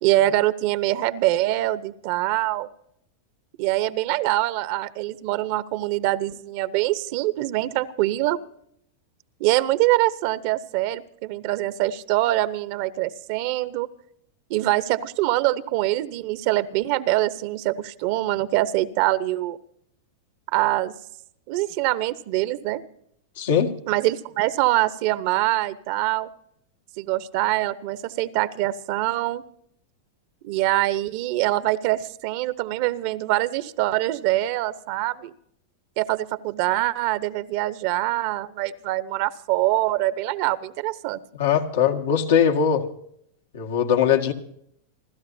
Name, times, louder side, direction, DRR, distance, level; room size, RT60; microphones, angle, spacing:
voice 1, 0.0-2.7 3.6-8.4 9.4-13.9 14.5-19.6 20.5-20.9 21.5-22.8 23.9-26.3 27.0-29.4 30.4-35.3 36.0-41.2, right 16 dB, 55° right, 15 dB, 0.9 m, -24 dB
voice 2, 23.4-23.7 41.4-42.9 43.5-44.3, left 8 dB, 80° left, 3 dB, 1.8 m, -20 dB
29.5 x 12.5 x 2.7 m, 0.69 s
hypercardioid pair, 120°, 0 cm